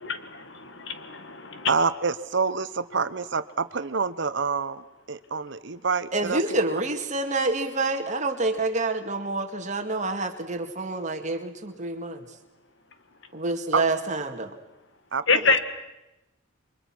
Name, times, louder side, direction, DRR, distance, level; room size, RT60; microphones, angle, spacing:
voice 1, 0.0-1.7 15.3-15.6, left 4 dB, 60° left, 9 dB, 1.9 m, -26 dB
voice 2, 1.7-6.4 13.7-13.8 15.1-15.6, right 5 dB, 60° right, 13 dB, 0.9 m, -27 dB
voice 3, 6.1-12.4 13.3-14.6, right 2 dB, 35° right, 6 dB, 2.1 m, -28 dB
29.5 x 24.0 x 6.2 m, 0.97 s
head